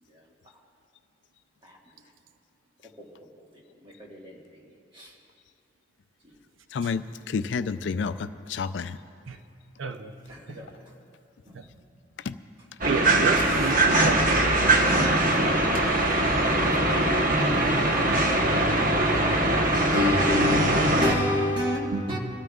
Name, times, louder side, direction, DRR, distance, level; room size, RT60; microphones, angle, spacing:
voice 1, 3.8-4.4 4.9-5.1 10.3-10.8 11.5-11.6 15.4-16.1 19.9-22.2, left 2 dB, 25° right, 1.6 m, -29 dB
voice 2, 6.7-8.2 8.5-9.0 12.3-12.4, left 5 dB, 65° left, 0.4 m, -29 dB
sound 1, 12.8-21.2, right 2 dB, 45° right, 1.0 m, -22 dB
voice 3, 12.9-13.7 14.0-14.4 17.3-18.2 18.5-18.8 21.9-22.0, right 4 dB, 90° right, 0.6 m, -31 dB
23.5 x 13.0 x 2.3 m
head